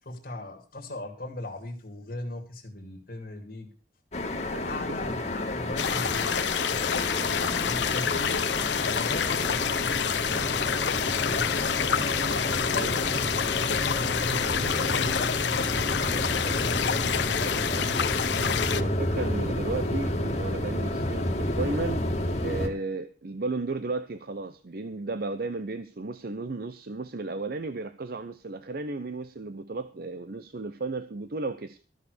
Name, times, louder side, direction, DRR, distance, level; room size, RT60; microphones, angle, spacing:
voice 1, 0.0-3.7 4.4-8.4 8.8-13.0 13.5-13.8 14.5-17.9, left 2 dB, 55° left, 3 dB, 2.4 m, -39 dB
sound 1, 4.1-22.7, left 1 dB, 40° left, 2.2 m, -30 dB
sound 2, 5.8-18.8, left 8 dB, 90° left, 0.8 m, -28 dB
voice 2, 18.7-22.1 22.4-31.8, right 3 dB, 60° right, 11 dB, 0.7 m, -34 dB
14.0 x 6.7 x 6.6 m, 0.39 s
head